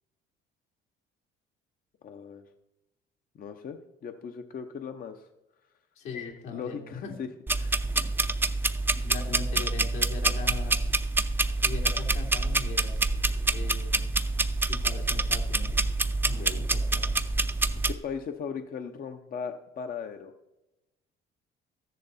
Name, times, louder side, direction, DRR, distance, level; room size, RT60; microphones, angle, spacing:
voice 1, 2.0-2.5 3.3-5.3 6.5-7.3 7.6-7.8 16.4-16.7 17.9-20.3, left 6 dB, 45° left, 7 dB, 0.7 m, -38 dB
voice 2, 6.0-7.1 7.9-8.0 8.9-10.9 11.6-13.1 13.5-14.1 14.7-15.8 16.2-17.2, left 5 dB, 80° left, 0 dB, 3.0 m, -40 dB
sound 1, 7.5-17.9, right 2 dB, 10° right, 0.5 m, -27 dB
13.5 x 10.5 x 4.1 m, 0.96 s
cardioid pair, 115°, 21 cm